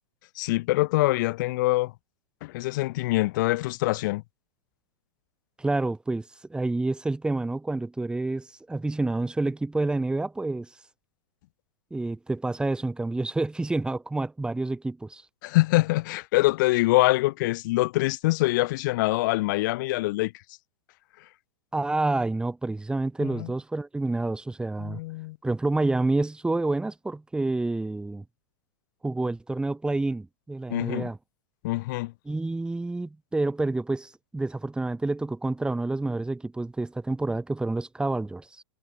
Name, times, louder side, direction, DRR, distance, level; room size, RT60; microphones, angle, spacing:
voice 1, 0.4-1.9 2.4-4.2 15.4-20.3 23.2-23.5 24.8-25.4 30.7-31.1 31.6-32.1, left 20 dB, 50° left, 2.5 m, -24 dB
voice 2, 5.6-10.7 11.9-15.2 21.7-25.0 25.4-28.2 29.0-31.2 32.2-38.6, right 2 dB, 5° right, 5.0 m, -28 dB
figure-of-eight pair, 105°, 13 cm